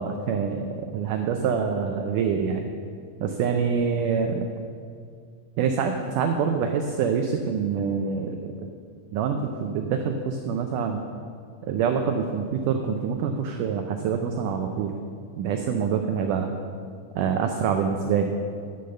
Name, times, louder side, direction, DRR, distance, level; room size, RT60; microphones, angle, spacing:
voice 1, 0.0-2.7 3.2-4.5 5.6-8.5 9.1-11.0 11.6-15.0 15.4-16.5 17.2-18.3, right 6 dB, 90° right, 5 dB, 1.8 m, -26 dB
14.0 x 5.5 x 6.6 m, 2.2 s
omnidirectional pair, 4.5 m